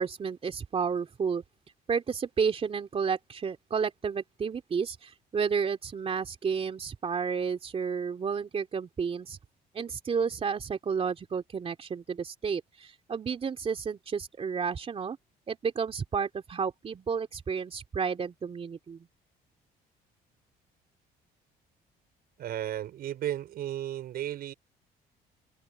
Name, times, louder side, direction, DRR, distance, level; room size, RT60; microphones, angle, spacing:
voice 1, 0.0-1.4 1.9-9.4 9.7-15.2 15.5-19.1, right 6 dB, 35° right, 3.1 m, -31 dB
voice 2, 22.4-24.5, right 12 dB, 65° right, 5.0 m, -34 dB
cardioid pair, 110°, 17 cm